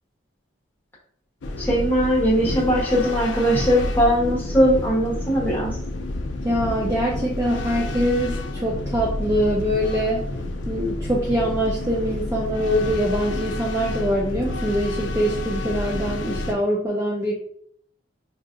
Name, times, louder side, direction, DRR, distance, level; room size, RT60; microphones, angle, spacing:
sound 1, 1.4-16.5, left 2 dB, 65° left, 0.4 m, -29 dB
voice 1, 1.6-5.7, equal, 10° left, -5 dB, 1.0 m, -20 dB
voice 2, 6.4-10.2 10.7-17.3, equal, 15° right, -4 dB, 0.3 m, -24 dB
4.6 x 2.4 x 2.5 m, 0.64 s
head